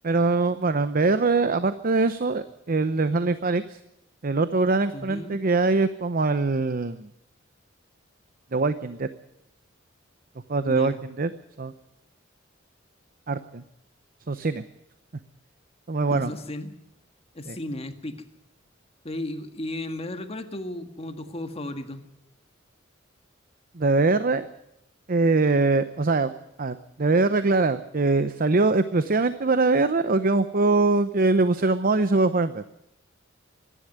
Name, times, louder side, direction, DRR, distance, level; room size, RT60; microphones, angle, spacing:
voice 1, 0.0-3.8 4.2-7.1 8.5-9.1 10.5-11.3 11.6-11.7 13.3-13.6 14.3-14.6 15.9-16.3 17.5-17.6 23.7-24.5 25.1-26.3 26.6-32.6, right 3 dB, 45° right, 12 dB, 0.7 m, -23 dB
voice 2, 4.9-5.4 10.6-11.0 16.1-16.7 17.3-18.2 19.0-22.1, left 1 dB, 30° left, 7 dB, 1.8 m, -35 dB
25.0 x 11.0 x 9.5 m, 0.83 s
head